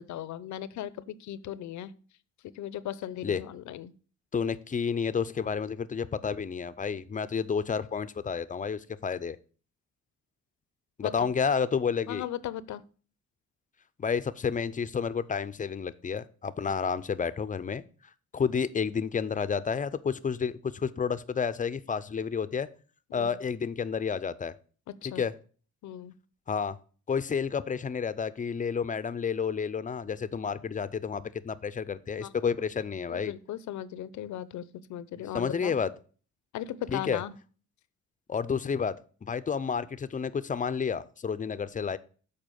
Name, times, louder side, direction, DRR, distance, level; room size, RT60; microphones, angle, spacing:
voice 1, 0.0-1.9 2.4-3.9 11.0-11.3 12.1-12.8 23.1-23.4 25.0-25.2 25.8-26.1 32.2-32.3 33.1-34.6 34.9-35.7 36.5-37.3, left 11 dB, 70° left, 17 dB, 0.6 m, -37 dB
voice 2, 4.3-9.4 11.0-12.3 14.0-17.8 18.3-22.7 23.1-24.5 25.2-25.3 26.5-26.8 27.1-33.3 35.3-35.9 36.9-37.2 38.3-38.9 39.2-42.0, left 6 dB, 25° left, 15 dB, 0.5 m, -30 dB
7.6 x 4.3 x 6.4 m, 0.40 s
cardioid pair, 90°, 30 cm